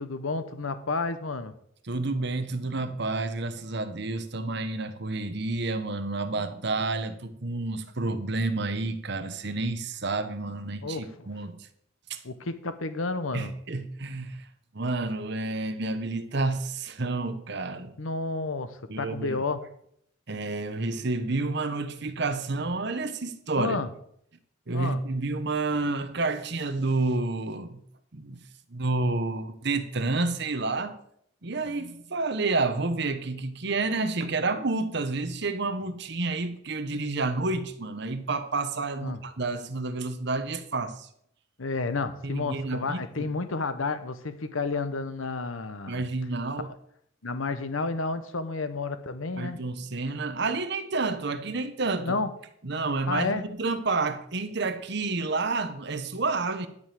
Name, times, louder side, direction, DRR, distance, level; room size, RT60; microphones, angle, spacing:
voice 1, 0.0-1.5 10.8-11.0 12.2-13.5 18.0-19.6 23.6-23.9 24.7-25.0 39.0-39.2 41.6-46.0 46.6-46.7 47.2-49.6 52.0-52.3 53.1-53.4, left 3 dB, 85° left, 0.9 m, -31 dB
voice 2, 1.8-11.7 12.1-12.2 13.3-14.5 14.7-17.9 18.9-19.4 20.3-23.8 24.7-27.8 28.1-28.4 28.7-31.0 31.4-41.1 42.2-43.3 45.9-46.7 49.4-52.2 52.6-56.7, right 3 dB, 55° right, 1.0 m, -29 dB
12.0 x 5.3 x 7.6 m
head